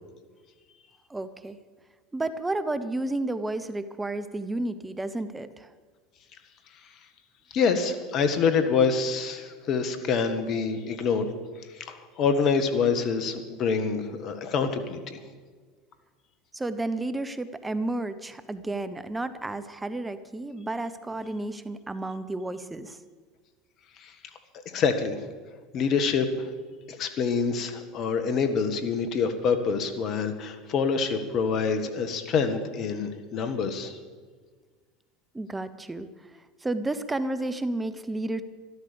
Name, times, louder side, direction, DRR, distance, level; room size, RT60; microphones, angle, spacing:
voice 1, 1.1-1.6 2.1-5.7 16.5-23.0 35.3-36.1 36.6-38.4, right 2 dB, 15° right, 12 dB, 1.0 m, -31 dB
voice 2, 7.5-11.3 11.7-15.2 24.0-24.1 24.7-25.2 25.7-26.5 26.9-33.9, left 5 dB, 50° left, 9 dB, 1.7 m, -26 dB
13.0 x 12.5 x 7.1 m, 1.5 s
hypercardioid pair, 80°, 0 cm